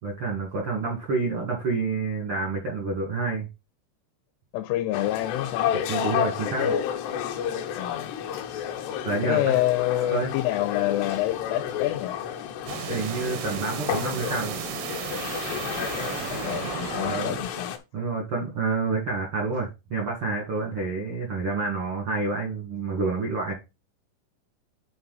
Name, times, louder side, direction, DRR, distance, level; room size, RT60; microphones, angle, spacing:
voice 1, 0.0-3.5 5.9-6.8 9.0-9.6 10.1-10.3 12.9-14.6 17.0-17.4 17.9-23.5, right 3 dB, 75° right, 1.2 m, -28 dB
voice 2, 4.5-5.7 7.8-8.1 9.2-12.2 15.6-17.8, left 15 dB, 90° left, 3.2 m, -27 dB
sound 1, 4.9-17.8, left 9 dB, 75° left, 2.8 m, -31 dB
sound 2, 12.7-17.5, right 12 dB, 90° right, 3.3 m, -34 dB
10.0 x 4.1 x 4.0 m
omnidirectional pair, 5.5 m